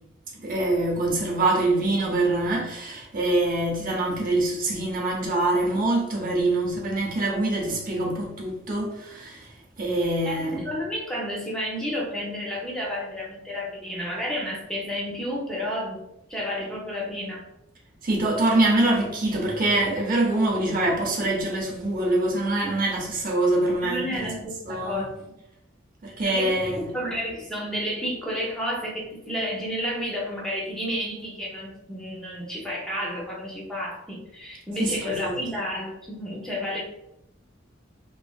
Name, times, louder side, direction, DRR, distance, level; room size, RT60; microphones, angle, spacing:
voice 1, 0.4-10.7 18.0-24.3 24.7-25.0 26.0-26.9 34.8-35.4, right 2 dB, 45° right, 0.8 m, -24 dB
voice 2, 10.2-16.0 16.3-17.4 23.8-25.3 26.2-36.8, equal, 5° left, 0.6 m, -31 dB
3.1 x 2.6 x 2.3 m
head